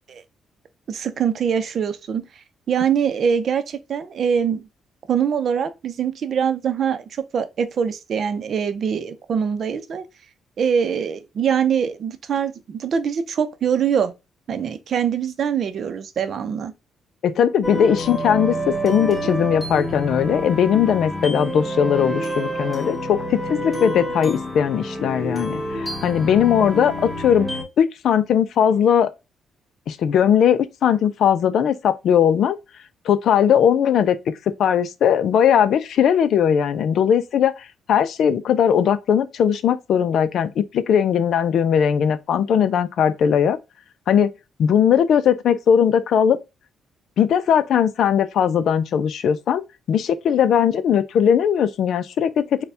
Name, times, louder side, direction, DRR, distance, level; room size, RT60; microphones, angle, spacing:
voice 1, 0.9-2.2 2.7-4.6 5.1-10.0 10.6-14.1 14.5-16.7, right 7 dB, 55° right, 0.6 m, -23 dB
voice 2, 17.2-27.5 27.8-29.1 29.9-32.6 33.1-34.2 34.6-43.6 44.1-44.3 44.6-46.4 47.2-49.6 49.9-52.3, left 8 dB, 70° left, 0.4 m, -19 dB
sound 1, 17.6-27.6, equal, 10° right, 1.8 m, -28 dB
4.2 x 2.2 x 3.4 m
cardioid pair, 90°, 0 cm